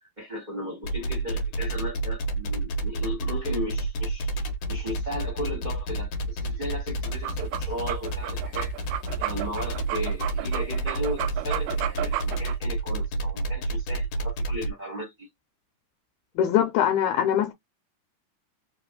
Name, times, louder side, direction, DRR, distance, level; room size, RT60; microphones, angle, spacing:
voice 1, 0.0-8.7 9.2-15.3, equal, 20° right, 1.2 m, -36 dB
sound 1, 0.8-14.7, right 2 dB, 65° left, 2.0 m, -29 dB
sound 2, 7.1-12.6, right 14 dB, 80° right, 2.1 m, -33 dB
voice 2, 16.4-17.5, left 10 dB, 80° left, 2.1 m, -22 dB
4.9 x 2.6 x 3.7 m
omnidirectional pair, 3.7 m